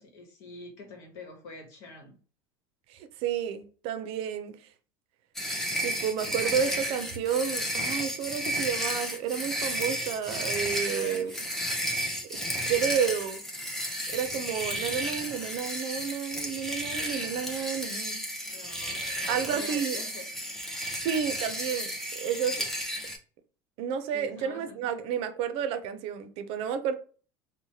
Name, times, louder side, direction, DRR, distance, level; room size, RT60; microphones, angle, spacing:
voice 1, 0.0-2.1 6.3-6.9 10.8-11.4 18.5-20.2 24.1-24.8, left 3 dB, 70° left, 1.0 m, -45 dB
voice 2, 2.9-4.6 5.8-11.3 12.3-12.4 12.6-13.4 14.1-18.2 19.3-20.0 20.9-22.6 23.8-26.9, right 8 dB, 60° right, 0.5 m, -31 dB
sound 1, 5.3-23.2, equal, 5° left, 0.6 m, -33 dB
3.0 x 2.1 x 2.8 m
supercardioid pair, 125°, 11 cm